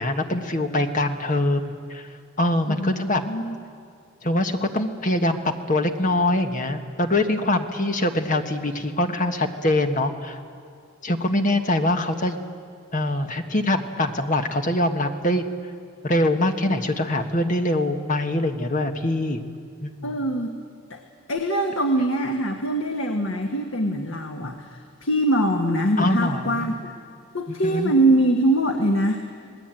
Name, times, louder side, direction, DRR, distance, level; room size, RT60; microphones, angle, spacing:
voice 1, 0.0-2.1 2.4-3.3 4.2-10.4 11.0-12.4 12.9-15.4 16.0-19.4 19.8-20.2 26.0-26.7 27.5-27.9, left 1 dB, 40° left, 6 dB, 1.5 m, -23 dB
voice 2, 2.7-3.6 20.0-20.5 20.9-21.0 21.3-26.9 27.3-29.2, right 1 dB, 80° left, 4 dB, 1.6 m, -23 dB
27.0 x 19.5 x 9.1 m, 2.3 s
head